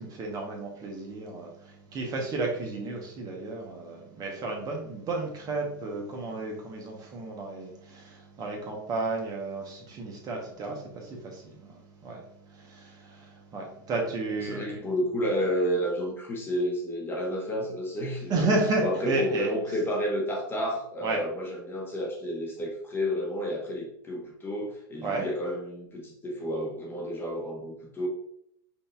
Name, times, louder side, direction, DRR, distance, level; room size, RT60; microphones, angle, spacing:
voice 1, 0.0-11.7 12.0-12.2 12.5-14.8 18.3-19.5 21.0-21.2 25.0-25.3, right 3 dB, 30° right, 0 dB, 0.9 m, -32 dB
voice 2, 14.4-18.5 18.8-28.1, equal, 15° left, 0 dB, 1.0 m, -31 dB
5.3 x 2.7 x 2.3 m, 0.71 s
hypercardioid pair, 120°, 13 cm